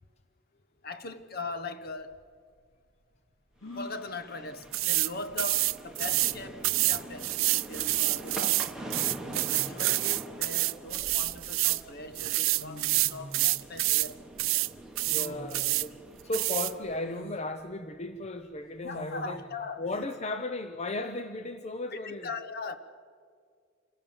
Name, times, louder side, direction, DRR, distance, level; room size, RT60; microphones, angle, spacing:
voice 1, 0.8-2.2 3.7-7.4 7.7-8.8 9.5-14.3 15.1-15.5 18.8-19.9 21.9-22.8, left 3 dB, 50° left, 1.1 m, -40 dB
sound 1, 2.0-2.1 3.6-4.1 5.6-5.7 6.1-6.6 7.9-8.1 9.2-10.0 10.6-11.6 12.3-12.4 12.6-13.4 15.0-15.6 16.2-16.3 17.0-17.5 18.8-19.4, equal, 85° left, 2.5 m, -46 dB
sound 2, 3.7-17.2, right 1 dB, 5° right, 1.4 m, -45 dB
sound 3, 4.7-5.1 5.4-6.3 6.6-11.8 12.1-14.1 14.4-14.7 15.0-15.9 16.3-16.7, right 19 dB, 85° right, 0.5 m, -27 dB
voice 2, 15.1-19.4 19.8-22.3, left 2 dB, 35° left, 0.7 m, -36 dB
26.5 x 17.5 x 7.2 m
head